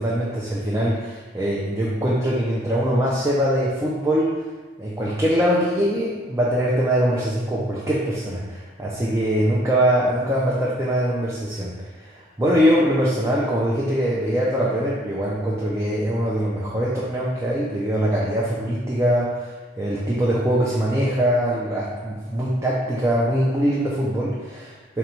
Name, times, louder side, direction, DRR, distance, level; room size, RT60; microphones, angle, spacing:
voice 1, 0.0-4.3 4.8-11.7 12.0-25.0, equal, 15° right, -6 dB, 0.4 m, -22 dB
3.9 x 2.3 x 4.3 m, 1.3 s
head